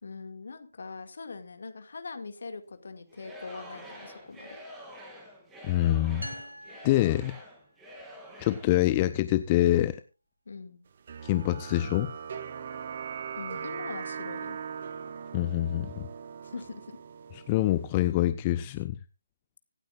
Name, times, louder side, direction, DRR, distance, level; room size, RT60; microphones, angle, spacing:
voice 1, 0.0-4.6 10.5-10.8 13.3-14.6 16.4-17.0, left 4 dB, 50° left, 8 dB, 2.1 m, -42 dB
Singing / Crowd, 3.1-8.8, equal, 10° right, 2.7 m, -47 dB
voice 2, 5.6-6.3 6.8-7.4 8.4-10.0 11.2-12.1 15.3-16.1 17.3-18.9, left 14 dB, 20° left, 13 dB, 0.5 m, -25 dB
sound 1, 6.2-8.0, equal, 85° right, 1.6 m, -45 dB
sound 2, 11.1-17.9, right 7 dB, 35° right, 0.9 m, -40 dB
25.5 x 9.1 x 2.5 m, 0.31 s
figure-of-eight pair, 145°, 0 cm